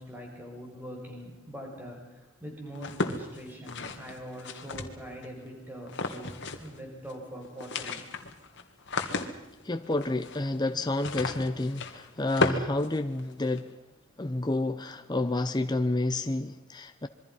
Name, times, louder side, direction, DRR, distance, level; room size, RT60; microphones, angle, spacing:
voice 1, 0.0-6.3 6.6-8.0, equal, 10° right, 0 dB, 5.6 m, -43 dB
sound 1, 2.8-5.3 5.9-6.8 7.0-7.1 7.4-13.6, left 3 dB, 60° left, 2.1 m, -34 dB
voice 2, 9.6-13.7 14.2-17.1, left 2 dB, 20° left, 8 dB, 0.8 m, -29 dB
26.5 x 23.0 x 5.6 m, 1.0 s
head